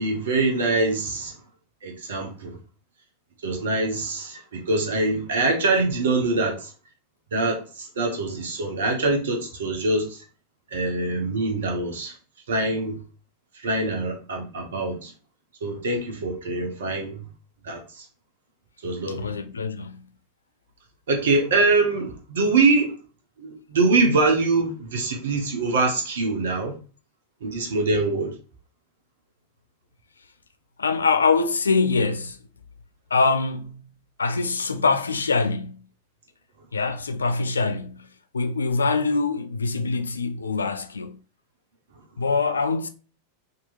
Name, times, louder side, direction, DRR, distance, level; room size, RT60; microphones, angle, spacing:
voice 1, 0.0-1.3 1.8-2.6 3.4-6.7 7.3-10.2 10.7-12.1 12.5-13.0 13.6-15.1 15.6-17.2 17.6-18.0 18.8-19.2 21.1-22.9 23.4-26.7 27.4-28.3, right 3 dB, 60° right, 0.9 m, -24 dB
voice 2, 19.1-20.1 30.8-32.4 33.1-33.8 34.2-35.9 36.7-41.2 42.2-42.9, left 4 dB, 75° left, 0.3 m, -24 dB
3.8 x 2.9 x 2.5 m
figure-of-eight pair, 90°, 0 cm